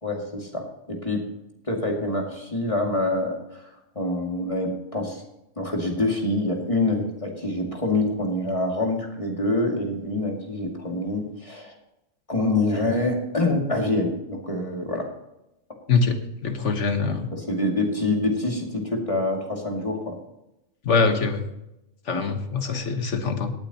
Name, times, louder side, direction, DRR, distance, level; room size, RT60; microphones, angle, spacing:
voice 1, 0.0-1.2 1.7-3.7 4.0-5.2 5.6-11.7 12.3-15.1 17.1-20.2 22.1-22.2, left 2 dB, 25° left, 0 dB, 2.3 m, -26 dB
voice 2, 15.9-17.3 20.8-21.4 22.1-23.5, left 4 dB, 65° left, 6 dB, 1.5 m, -23 dB
18.5 x 8.8 x 2.9 m, 0.89 s
omnidirectional pair, 1.3 m